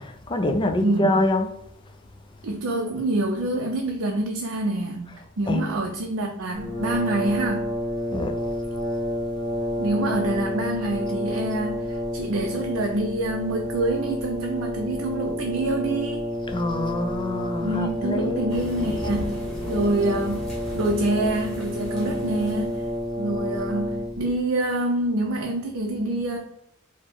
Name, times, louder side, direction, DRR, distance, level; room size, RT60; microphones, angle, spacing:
voice 1, 0.0-1.5 5.1-5.8 8.1-8.4 16.5-18.5, left 1 dB, 20° left, 0.4 m, -26 dB
voice 2, 0.8-1.1 2.4-5.1 5.4-7.7 9.8-16.3 17.6-22.9 23.2-26.4, right 1 dB, 65° right, 0.5 m, -26 dB
Brass instrument, 6.5-24.3, equal, 35° right, 1.5 m, -30 dB
sound 1, 18.5-23.0, left 1 dB, ahead, 1.5 m, -36 dB
4.3 x 2.1 x 4.4 m
head